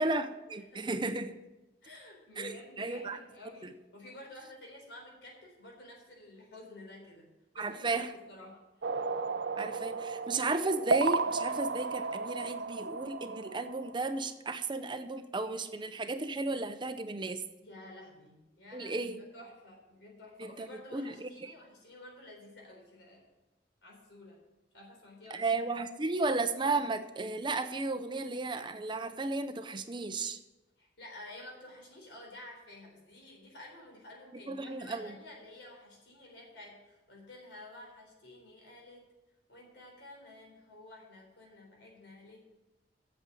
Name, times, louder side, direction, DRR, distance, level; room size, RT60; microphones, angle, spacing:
voice 1, 0.0-1.3 2.4-3.2 3.6-3.7 7.6-8.1 9.6-17.4 18.7-19.2 20.4-21.5 25.3-30.4 34.5-35.2, right 3 dB, 25° right, 10 dB, 0.6 m, -34 dB
voice 2, 0.7-1.2 1.8-8.7 17.6-23.3 23.8-24.4 24.7-25.6 30.8-39.1 39.5-42.5, left 1 dB, 85° left, 0 dB, 4.1 m, -51 dB
sound 1, 8.8-14.2, right 4 dB, 70° right, 0.6 m, -34 dB
8.2 x 7.3 x 8.5 m, 1.0 s
head